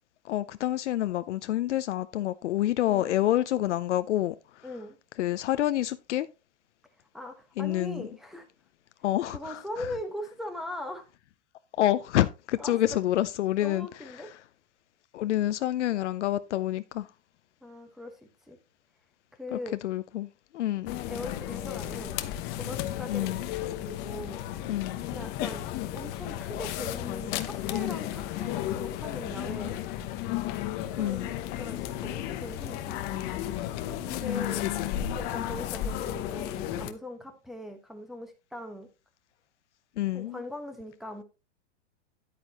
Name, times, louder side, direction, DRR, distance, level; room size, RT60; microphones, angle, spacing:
voice 1, 0.2-4.7 5.2-6.3 7.6-8.1 9.0-9.9 11.8-13.9 14.1-14.3 15.1-17.1 19.5-21.0 23.1-23.5 24.7-25.1 31.0-31.3 34.2-35.2 40.0-40.4, left 13 dB, 70° left, 0.7 m, -28 dB
voice 2, 2.9-3.2 4.6-5.0 7.1-8.5 9.3-11.0 12.6-13.0 13.6-14.3 17.6-18.2 18.5-18.6 19.4-19.8 21.1-24.4 25.1-29.8 30.9-33.0 34.0-38.9 40.1-41.2, left 1 dB, ahead, 1.2 m, -40 dB
sound 1, 20.9-36.9, left 12 dB, 25° left, 0.8 m, -34 dB
10.5 x 9.0 x 3.0 m
hypercardioid pair, 150°, 37 cm